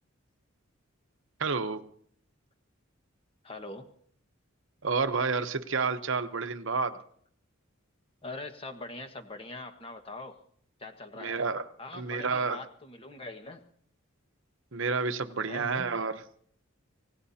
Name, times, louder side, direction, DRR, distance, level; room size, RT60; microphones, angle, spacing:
voice 1, 1.4-1.9 4.8-7.0 11.2-11.7 11.9-12.6 14.7-16.2, right 4 dB, 60° right, 9 dB, 0.9 m, -30 dB
voice 2, 3.4-3.9 8.2-10.4 10.8-11.4 11.8-13.6 15.5-15.9, left 2 dB, 25° left, 5 dB, 1.5 m, -42 dB
25.0 x 18.5 x 2.8 m, 0.62 s
head